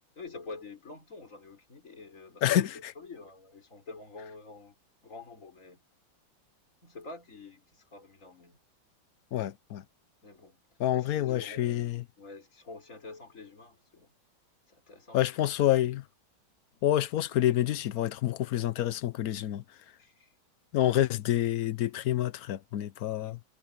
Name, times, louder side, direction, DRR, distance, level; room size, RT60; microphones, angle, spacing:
voice 1, 0.2-4.8 5.0-5.8 6.8-8.6 10.2-10.6 10.9-14.1 14.7-15.4 20.0-20.3 23.2-23.4, left 3 dB, 40° left, 5.3 m, -47 dB
voice 2, 2.4-2.7 9.3-9.8 10.8-12.0 15.1-16.0 16.8-19.6 20.7-23.4, left 12 dB, 65° left, 0.9 m, -28 dB
omnidirectional pair, 2.1 m